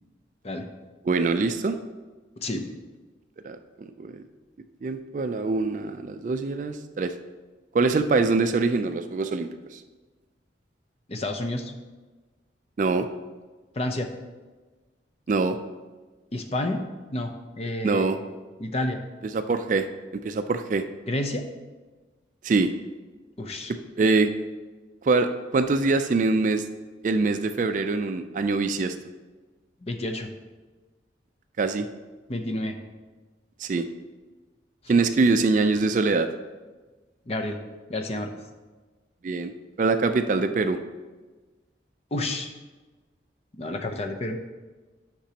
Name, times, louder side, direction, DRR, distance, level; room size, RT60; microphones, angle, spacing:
voice 1, 1.0-1.8 3.4-4.2 4.8-7.1 7.7-9.8 12.8-13.1 15.3-15.6 17.8-18.2 19.3-19.9 20.2-20.8 22.4-22.7 23.7-24.3 25.0-26.6 27.0-29.0 31.6-31.9 33.6-33.9 34.9-36.3 39.2-39.5 39.8-40.8, right 3 dB, 45° right, 9 dB, 0.3 m, -24 dB
voice 2, 2.4-2.7 11.1-11.7 13.8-14.1 16.3-16.8 17.1-18.1 18.6-19.0 21.1-21.4 23.4-23.7 29.8-30.3 32.3-32.8 37.3-37.6 37.9-38.3 42.1-42.5 43.5-44.4, left 1 dB, 35° left, 5 dB, 0.6 m, -29 dB
10.0 x 6.0 x 2.9 m, 1.3 s
head